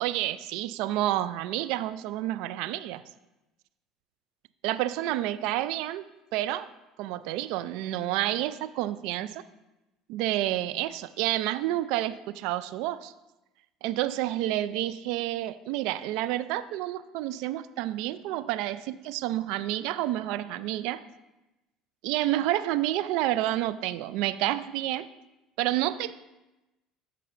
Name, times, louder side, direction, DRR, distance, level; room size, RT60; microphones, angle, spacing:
voice 1, 0.0-3.0 4.6-6.1 6.3-6.7 7.0-9.4 10.1-13.1 13.8-21.0 22.0-25.1 25.6-26.2, right 14 dB, 70° right, 15 dB, 0.4 m, -29 dB
13.0 x 5.5 x 2.5 m, 1.0 s
hypercardioid pair, 75°, 0 cm